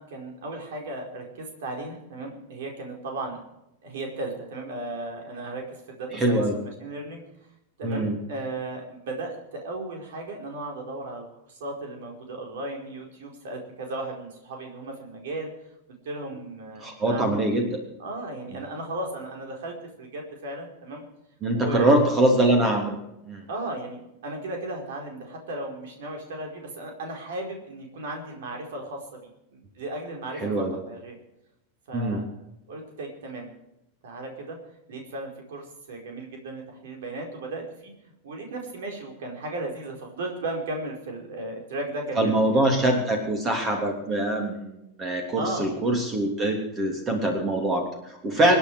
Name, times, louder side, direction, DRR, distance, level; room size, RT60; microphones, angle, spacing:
voice 1, 0.0-3.4 3.8-7.2 7.8-15.5 16.0-17.4 18.0-21.0 21.5-22.0 23.5-31.1 31.9-32.2 32.7-33.5 34.0-34.6 34.9-42.7 45.4-45.7 48.3-48.6, right 2 dB, 55° right, 2 dB, 4.8 m, -35 dB
voice 2, 6.1-6.5 7.8-8.2 16.8-17.8 21.4-23.0 23.3-23.4 30.4-30.7 31.9-32.2 42.2-48.6, right 1 dB, 25° right, 3 dB, 3.3 m, -23 dB
26.5 x 10.0 x 4.8 m, 0.85 s
figure-of-eight pair, 90°, 0 cm